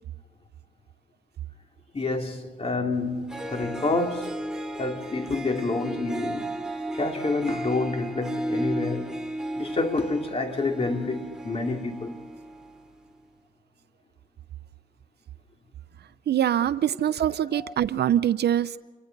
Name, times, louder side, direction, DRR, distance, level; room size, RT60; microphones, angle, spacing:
voice 1, 1.9-4.4 4.8-6.6 6.9-9.1 9.5-12.2 17.5-17.7, left 3 dB, 30° left, 2.8 m, -28 dB
Harp, 3.0-3.1 3.3-12.8, right 1 dB, 5° right, 3.0 m, -34 dB
voice 2, 16.3-18.8, right 10 dB, 55° right, 0.6 m, -24 dB
28.0 x 24.0 x 4.0 m
cardioid pair, 90°, 20 cm